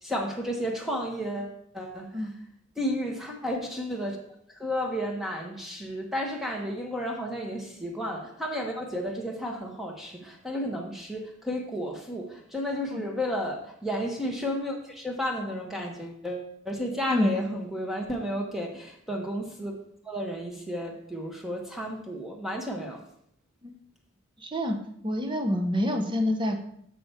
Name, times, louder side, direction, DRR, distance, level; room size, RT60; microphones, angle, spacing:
voice 1, 0.0-2.1 2.8-4.2 4.6-19.7 20.0-23.0, equal, ahead, 0 dB, 1.2 m, -32 dB
voice 2, 24.4-24.8 25.0-26.6, left 1 dB, 25° right, 4 dB, 0.8 m, -27 dB
6.9 x 6.2 x 4.6 m, 0.69 s
head